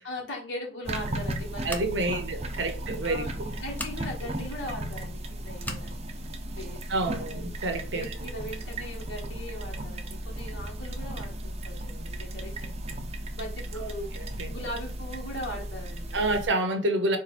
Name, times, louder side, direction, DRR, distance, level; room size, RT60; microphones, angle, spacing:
voice 1, 0.0-2.3 2.7-7.3 7.9-13.0 13.3-14.2 14.4-16.3, left 1 dB, 65° left, 1.3 m, -40 dB
sound 1, 0.8-16.5, right 1 dB, 35° right, 0.5 m, -36 dB
Scissors, 1.6-2.2 3.7-4.0 5.6-5.9, left 2 dB, 10° left, 0.5 m, -38 dB
voice 2, 1.6-3.2 6.9-8.0 13.8-13.9 14.4-14.5 16.1-17.2, right 2 dB, 65° right, 0.7 m, -28 dB
4.2 x 2.5 x 4.2 m
head